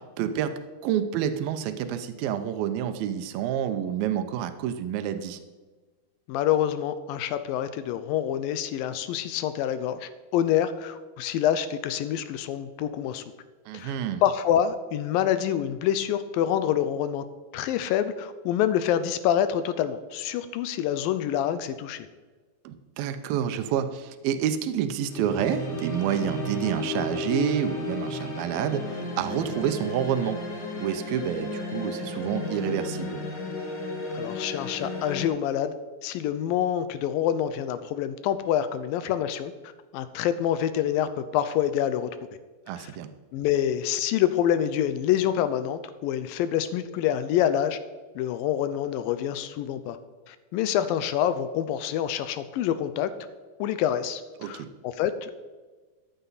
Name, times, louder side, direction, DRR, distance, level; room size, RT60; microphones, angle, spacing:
voice 1, 0.2-0.5 0.8-5.4 13.7-14.2 22.6-30.4 30.8-33.2 42.7-43.1 54.4-54.7, right 9 dB, 80° right, 8 dB, 2.5 m, -28 dB
voice 2, 6.3-13.2 13.7-17.3 17.5-22.1 34.1-35.7 36.0-42.1 42.8-42.9 43.3-47.8 48.2-50.0 50.3-53.1 53.6-55.3, left 10 dB, 80° left, 12 dB, 2.3 m, -26 dB
sound 1, 25.0-35.3, left 2 dB, 55° left, 3.8 m, -33 dB
14.0 x 9.3 x 4.1 m, 1.3 s
omnidirectional pair, 4.3 m